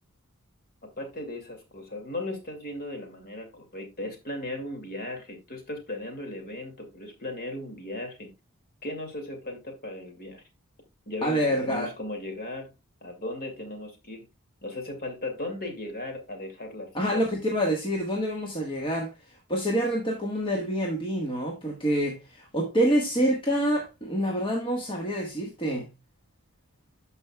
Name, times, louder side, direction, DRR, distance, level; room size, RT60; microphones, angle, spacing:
voice 1, 0.8-8.3 8.8-10.4 11.1-12.7 13.0-14.3 14.6-17.2, left 1 dB, 45° left, 2.2 m, -37 dB
voice 2, 11.2-11.9 16.9-19.1 19.5-25.9, equal, 25° left, 1.4 m, -27 dB
12.5 x 5.4 x 2.2 m
head